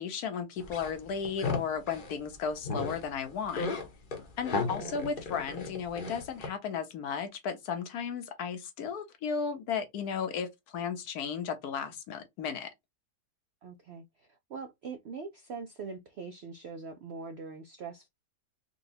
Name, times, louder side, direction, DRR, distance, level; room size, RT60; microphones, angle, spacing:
voice 1, 0.0-3.7 4.4-12.7, left 6 dB, 75° left, 1.3 m, -35 dB
sound 1, 0.6-2.2 2.6-3.0 3.3-6.5, left 4 dB, 40° left, 0.8 m, -35 dB
voice 2, 4.5-5.0 13.6-18.1, right 5 dB, 75° right, 0.6 m, -43 dB
4.0 x 2.3 x 2.6 m
omnidirectional pair, 1.7 m